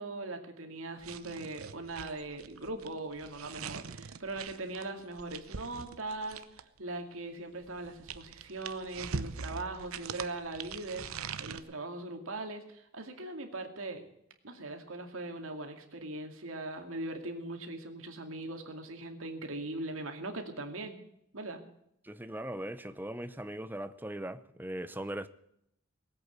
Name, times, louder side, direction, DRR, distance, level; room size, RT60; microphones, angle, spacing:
voice 1, 0.0-14.1 14.4-21.0 21.3-21.6, right 2 dB, 75° right, 2.3 m, -40 dB
sound 1, 1.0-6.8 7.6-11.6, right 5 dB, 90° right, 0.8 m, -42 dB
voice 2, 22.0-25.3, right 1 dB, 10° right, 0.7 m, -39 dB
19.0 x 8.4 x 8.2 m
head